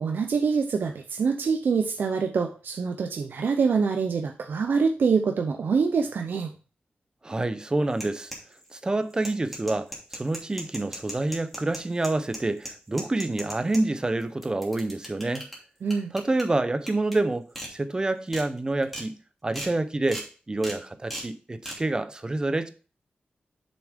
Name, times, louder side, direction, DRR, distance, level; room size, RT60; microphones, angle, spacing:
voice 1, 0.0-6.5 15.8-16.1, right 5 dB, 75° right, 0.7 m, -25 dB
voice 2, 7.2-8.3 8.7-15.5 16.1-19.1 19.4-20.2 20.5-22.7, right 2 dB, 25° right, 0.7 m, -27 dB
sound 1, 7.9-8.7 9.1-13.8 14.2-15.5 15.9-16.4 16.9-17.1 17.5-17.7 18.1-18.4 18.8-19.0 19.5-19.7 20.1-20.3 20.6-20.8 21.1-21.3 21.6-21.8, equal, 5° left, 2.8 m, -37 dB
6.9 x 6.2 x 3.6 m
wide cardioid pair, 120°, 3 cm